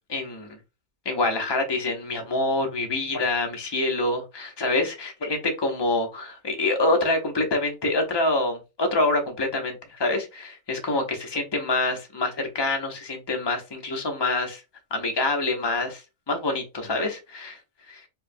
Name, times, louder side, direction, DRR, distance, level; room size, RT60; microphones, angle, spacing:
voice 1, 0.1-0.5 1.0-14.6 14.9-16.0 16.3-17.6 17.9-18.0, left 2 dB, 30° left, 0.5 m, -26 dB
4.6 x 2.2 x 2.6 m
omnidirectional pair, 1.5 m